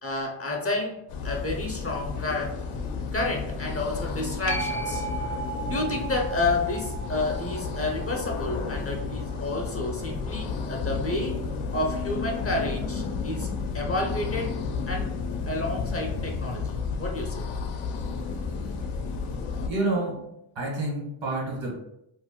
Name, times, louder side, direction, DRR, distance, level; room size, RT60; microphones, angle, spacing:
voice 1, 0.0-2.6 3.1-5.1 5.6-11.4 11.7-14.6 14.9-15.2 15.5-17.5, left 2 dB, 30° left, 1 dB, 0.5 m, -30 dB
sound 1, 1.1-19.7, left 5 dB, 75° left, 0.6 m, -32 dB
sound 2, 4.5-11.6 17.2-17.3, right 4 dB, 35° right, 0.6 m, -38 dB
voice 2, 19.6-20.3 20.5-21.8, right 2 dB, 65° right, -2 dB, 1.4 m, -29 dB
2.5 x 2.1 x 3.6 m, 0.79 s
cardioid pair, 65°, 49 cm